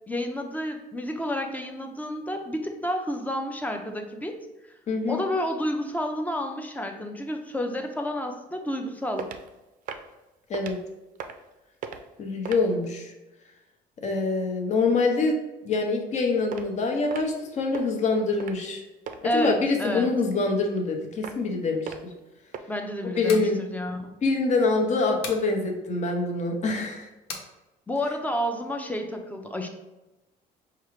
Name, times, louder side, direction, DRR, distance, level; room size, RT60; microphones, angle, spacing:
voice 1, 0.1-4.4 5.1-9.3 19.2-20.1 22.7-24.1 27.9-29.7, equal, 10° left, 4 dB, 0.5 m, -30 dB
voice 2, 4.9-5.2 10.5-10.8 12.2-13.1 14.0-15.3 15.6-18.8 19.2-21.9 23.2-23.6 24.2-27.1, left 3 dB, 45° left, 3 dB, 0.7 m, -25 dB
sound 1, 9.2-9.5 9.8-10.1 10.5-10.8 11.1-11.5 11.8-12.1 12.4-12.7 16.5-16.7 17.1-17.4 17.7-17.9 18.4-18.7 19.1-19.2 21.2-21.5 21.9-22.1 22.5-22.6, right 7 dB, 50° right, 0.4 m, -37 dB
sound 2, 23.2-23.5 25.2-25.5 27.3-27.5, left 4 dB, 80° left, 0.7 m, -36 dB
4.6 x 2.4 x 3.1 m, 1.0 s
cardioid pair, 110°, 17 cm